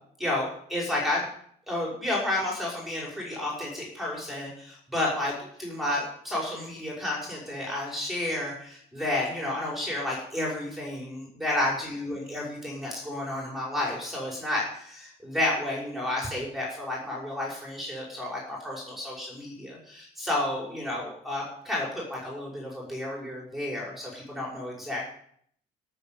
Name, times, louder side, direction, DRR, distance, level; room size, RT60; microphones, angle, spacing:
voice 1, 0.2-1.2 1.7-25.0, left 1 dB, ahead, -4 dB, 6.1 m, -31 dB
13.0 x 7.2 x 9.4 m, 0.64 s
cardioid pair, 110°, 17 cm